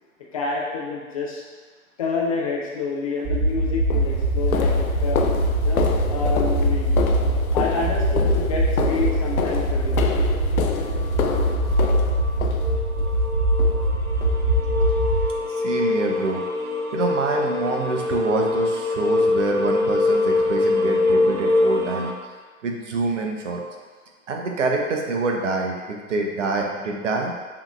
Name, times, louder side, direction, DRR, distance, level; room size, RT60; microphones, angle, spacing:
voice 1, 0.3-1.4 2.0-4.7 5.0-5.3 5.6-6.9 7.5-10.1, left 4 dB, 25° left, -3 dB, 0.5 m, -28 dB
sound 1, 3.2-3.4 3.9-13.1 13.6-13.9 14.2-14.4 14.8-15.0 15.4-15.5 16.0-16.1, left 6 dB, 75° left, 0.5 m, -29 dB
sound 2, 3.3-15.2, right 1 dB, 25° right, 0.8 m, -22 dB
sound 3, 11.8-11.9 12.2-22.1, left 2 dB, 85° right, 0.7 m, -24 dB
voice 2, 15.5-16.4 16.9-22.1 22.6-23.6 24.3-27.3, right 3 dB, 55° right, 1 dB, 0.8 m, -26 dB
7.2 x 2.9 x 2.3 m, 1.4 s
figure-of-eight pair, 110°, 43 cm